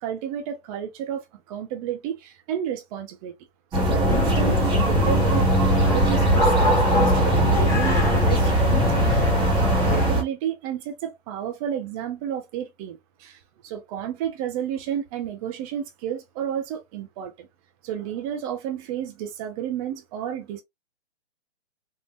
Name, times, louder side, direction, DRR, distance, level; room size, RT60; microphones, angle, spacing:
voice 1, 0.0-3.3 3.7-9.3 9.6-17.5 17.8-20.6, right 9 dB, 35° right, 0.8 m, -32 dB
sound 1, 3.7-10.2, right 1 dB, 15° right, 1.2 m, -20 dB
sound 2, 4.1-10.1, left 2 dB, 10° left, 1.0 m, -26 dB
3.7 x 2.6 x 2.5 m
hypercardioid pair, 125°, 33 cm